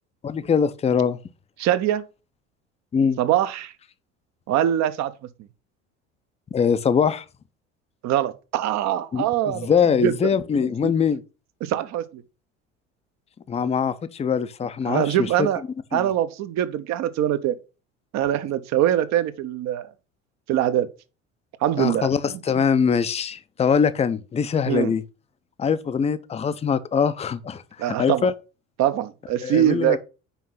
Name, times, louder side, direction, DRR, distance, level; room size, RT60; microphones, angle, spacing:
voice 1, 0.2-1.2 2.9-3.2 6.5-7.2 9.1-11.2 13.5-15.5 15.9-16.1 21.8-25.0 25.6-28.3 29.4-30.0, left 6 dB, 15° left, 0.6 m, -22 dB
voice 2, 1.6-2.0 3.2-3.7 4.5-5.1 8.0-10.1 10.6-10.9 11.6-12.2 14.8-15.6 15.9-17.6 18.1-19.9 20.5-20.9 21.6-22.6 24.7-24.9 27.8-28.3 28.8-30.0, right 11 dB, 50° right, 0.9 m, -23 dB
5.8 x 4.6 x 5.6 m
figure-of-eight pair, 65°, 36 cm